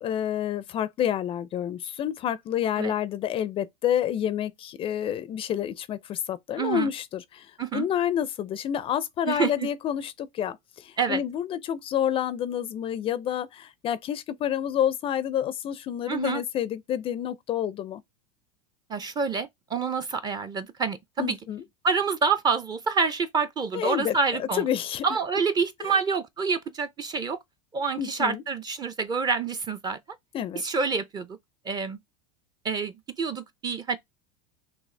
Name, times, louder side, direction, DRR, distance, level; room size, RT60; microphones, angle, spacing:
voice 1, 0.0-18.0 21.2-21.6 23.7-25.1 25.8-26.0 28.0-28.4 30.3-30.6, left 10 dB, 30° left, 0.4 m, -29 dB
voice 2, 6.6-6.9 7.6-7.9 9.3-9.7 11.0-11.2 16.1-16.4 18.9-21.4 21.8-24.6 25.0-27.4 27.7-30.0 30.5-31.3 31.7-32.0 32.6-32.9 33.2-34.0, right 5 dB, 25° right, 0.5 m, -27 dB
6.1 x 2.4 x 3.2 m
supercardioid pair, 120°, 17 cm